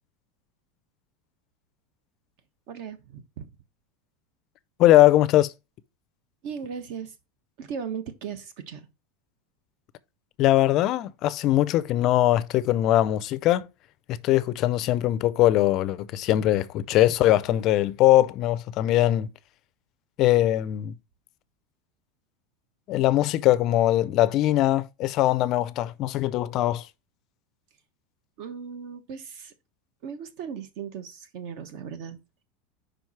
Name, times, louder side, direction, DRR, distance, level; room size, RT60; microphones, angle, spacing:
voice 1, 2.7-3.5 6.4-7.1 7.6-8.8 28.4-29.5 30.0-32.4, right 7 dB, 55° right, 1.1 m, -37 dB
voice 2, 4.8-5.5 10.4-13.7 14.1-19.3 20.2-20.9 22.9-26.9, left 14 dB, 40° left, 0.4 m, -21 dB
5.1 x 4.6 x 5.7 m
supercardioid pair, 155°, 0 cm